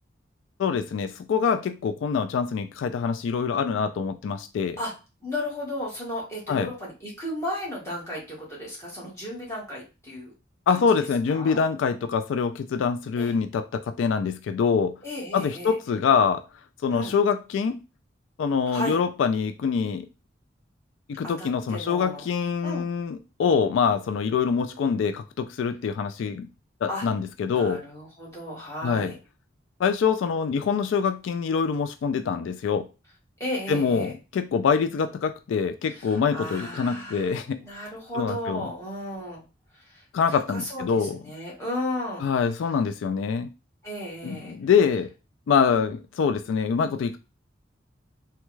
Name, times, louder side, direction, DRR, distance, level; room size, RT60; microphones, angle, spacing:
voice 1, 0.6-4.8 6.5-6.7 10.7-14.9 15.3-16.4 16.8-17.7 18.4-20.1 21.1-26.5 26.8-27.8 28.8-29.1 29.8-32.9 33.7-37.6 38.2-38.7 40.1-41.2 42.2-43.5 44.2-45.1 45.5-47.2, left 6 dB, 85° left, 9 dB, 0.3 m, -25 dB
voice 2, 5.2-10.3 10.7-10.8 11.3-11.6 13.1-13.3 15.0-15.8 16.9-17.1 18.7-19.0 21.4-22.2 22.6-22.8 26.9-27.1 27.4-29.2 33.4-34.1 35.9-39.4 39.7-40.0 40.3-42.2 43.8-44.5, left 1 dB, 15° left, -5 dB, 1.4 m, -34 dB
3.4 x 2.3 x 3.1 m, 0.30 s
head